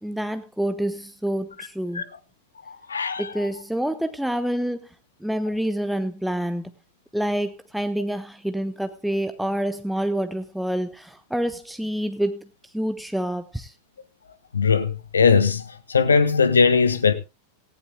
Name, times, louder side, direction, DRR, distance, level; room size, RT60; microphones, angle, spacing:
voice 1, 0.0-2.0 3.2-4.9 5.2-6.7 7.1-13.7, right 1 dB, ahead, 0.7 m, -27 dB
voice 2, 2.7-3.3 14.5-17.1, left 5 dB, 75° left, 1.1 m, -20 dB
18.0 x 15.5 x 2.2 m
figure-of-eight pair, 90°, 0 cm